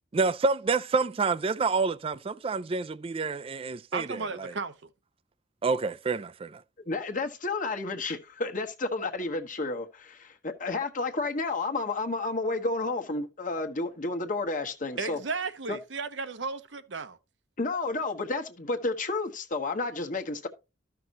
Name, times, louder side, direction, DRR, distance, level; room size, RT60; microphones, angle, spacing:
voice 1, 0.1-4.5 5.6-6.6, right 4 dB, 30° right, 0.4 m, -28 dB
voice 2, 3.9-4.9 15.0-17.2, right 4 dB, 75° right, 0.9 m, -34 dB
voice 3, 6.9-15.2 15.7-15.8 17.6-20.5, left 3 dB, 45° left, 1.2 m, -31 dB
13.5 x 5.9 x 2.9 m
head